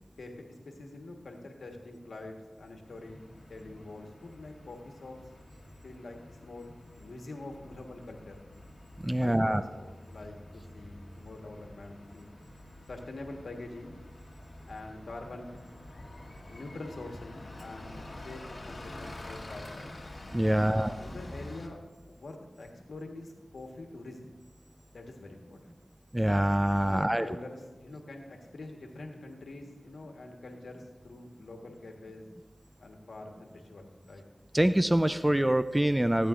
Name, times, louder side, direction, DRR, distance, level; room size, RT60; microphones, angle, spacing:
voice 1, 0.2-3.2 3.5-5.2 5.8-8.4 9.2-12.3 12.9-13.9 14.7-15.5 16.5-19.9 20.5-21.8 22.1-24.3 24.9-25.8 26.9-32.3 32.8-34.2, left 2 dB, 80° left, 2 dB, 1.3 m, -45 dB
Bus, 2.8-21.7, left 1 dB, 50° left, 1.3 m, -48 dB
voice 2, 9.0-9.6 20.3-20.9 26.1-27.3 34.5-36.3, right 1 dB, 15° right, 11 dB, 0.4 m, -25 dB
15.5 x 8.5 x 2.5 m, 1.2 s
cardioid pair, 40°, 0 cm